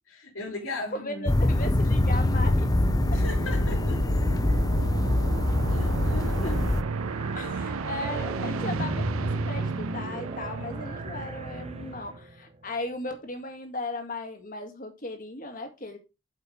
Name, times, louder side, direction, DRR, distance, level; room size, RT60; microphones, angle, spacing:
voice 1, 0.1-1.3 3.1-4.0 5.7-6.6, left 2 dB, 80° left, 3.5 m, -37 dB
voice 2, 0.9-2.7 3.1-3.2 7.3-16.0, left 2 dB, 40° left, 2.0 m, -36 dB
sound 1, 1.3-6.8, left 2 dB, 20° left, 0.4 m, -24 dB
sound 2, 1.4-12.2, right 5 dB, 80° right, 0.5 m, -34 dB
sound 3, 5.1-12.4, right 2 dB, 30° right, 0.9 m, -35 dB
8.1 x 5.6 x 4.9 m
head